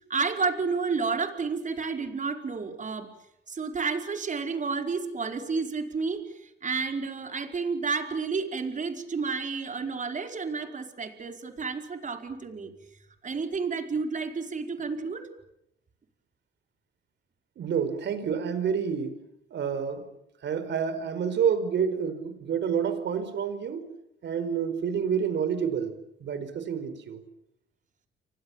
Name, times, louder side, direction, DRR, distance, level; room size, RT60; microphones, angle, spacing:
voice 1, 0.1-3.1 3.5-12.7 13.2-15.3, right 4 dB, 40° right, 5 dB, 4.8 m, -31 dB
voice 2, 17.6-19.2 19.5-20.1 20.4-23.8 24.2-25.9 26.2-27.2, right 7 dB, 65° right, 11 dB, 4.9 m, -28 dB
30.0 x 24.5 x 7.4 m, 0.81 s
cardioid pair, 90°, 20 cm